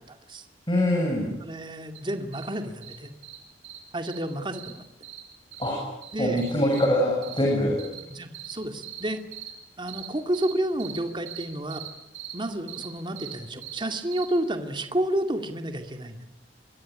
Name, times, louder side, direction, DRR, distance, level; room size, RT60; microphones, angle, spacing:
voice 1, 0.1-0.5 1.4-3.1 3.9-4.8 6.1-6.4 8.1-9.2 9.8-11.8 12.3-16.2, right 1 dB, 25° right, 6 dB, 2.2 m, -30 dB
voice 2, 0.7-1.3 5.6-5.8 6.2-7.8, left 1 dB, 25° left, 0 dB, 7.1 m, -23 dB
sound 1, 1.9-2.0 2.3-2.5 2.8-2.9 3.2-3.4 3.6-3.8 4.1-4.2 4.5-4.7 5.0-5.2 5.5-5.7 6.0-6.9 7.2-7.4 7.8-8.0 8.3-8.5 8.8-9.0 9.3-9.5 9.9-10.1 10.3-10.5 10.8-11.0 11.3-11.4 11.7-11.9 12.1-12.3 12.7-12.9 13.2-13.3 13.6-13.8 14.1-14.3, right 12 dB, 85° right, 6.0 m, -40 dB
24.0 x 23.5 x 10.0 m, 0.87 s
head